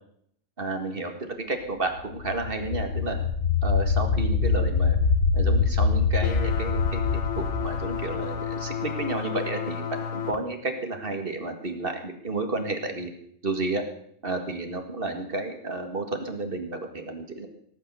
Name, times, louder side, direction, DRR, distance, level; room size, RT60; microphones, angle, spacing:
voice 1, 0.6-3.2 3.6-5.0 5.3-13.1 13.4-13.8 14.2-17.5, right 2 dB, 45° right, 5 dB, 2.1 m, -31 dB
sound 1, 2.0-8.8, left 5 dB, 85° left, 1.5 m, -24 dB
sound 2, 6.2-10.4, left 7 dB, 65° left, 1.6 m, -32 dB
17.5 x 8.7 x 6.9 m, 0.67 s
omnidirectional pair, 1.3 m